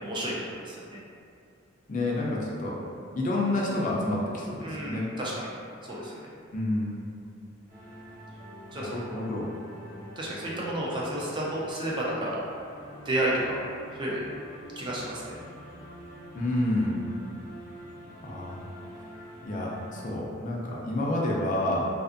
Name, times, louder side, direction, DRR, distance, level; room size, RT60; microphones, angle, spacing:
voice 1, 0.0-1.0 4.6-5.5 5.8-6.1 8.7-9.2 10.2-12.4 13.0-13.6 13.9-14.2 14.8-15.2, right 1 dB, 25° right, -5 dB, 0.4 m, -31 dB
voice 2, 1.9-2.8 3.2-5.1 6.5-7.1 8.7-9.5 16.3-17.0 18.2-18.6 19.4-21.9, left 1 dB, 40° left, -4 dB, 0.4 m, -29 dB
sound 1, 7.7-20.1, equal, 55° right, 0.9 m, -46 dB
2.5 x 2.4 x 2.5 m, 2.3 s
head